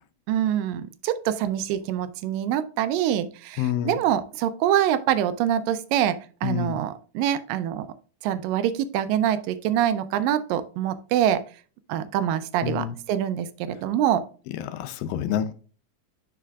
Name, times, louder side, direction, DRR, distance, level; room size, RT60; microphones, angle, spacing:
voice 1, 0.3-7.9 8.2-11.4 11.9-14.2, right 10 dB, 85° right, 13 dB, 2.2 m, -25 dB
voice 2, 3.6-4.0 6.4-6.8 12.6-13.0 14.6-15.5, left 10 dB, 85° left, 11 dB, 2.3 m, -28 dB
11.5 x 4.2 x 2.3 m, 0.39 s
omnidirectional pair, 3.9 m